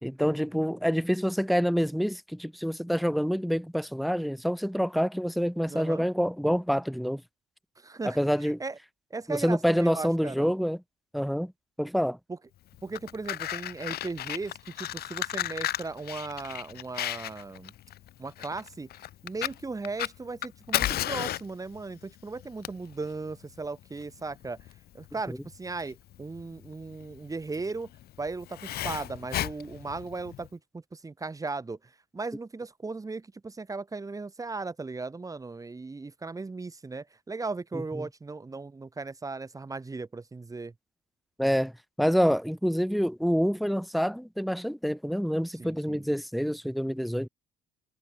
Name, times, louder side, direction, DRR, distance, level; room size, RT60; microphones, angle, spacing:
voice 1, 0.0-7.2 8.0-8.6 9.3-10.8 11.1-11.5 11.8-12.2 25.3-25.4 37.7-38.1 41.4-41.7 42.0-47.3, equal, ahead, 3.3 m, -27 dB
voice 2, 5.7-6.1 7.8-8.8 9.1-10.5 12.3-12.4 12.8-17.7 18.2-18.9 19.2-24.6 24.9-27.9 28.2-31.8 32.1-40.7 45.6-46.0, right 3 dB, 20° right, 6.9 m, -37 dB
Fire, 12.7-30.5, left 13 dB, 65° left, 2.9 m, -35 dB
cardioid pair, 110°, 17 cm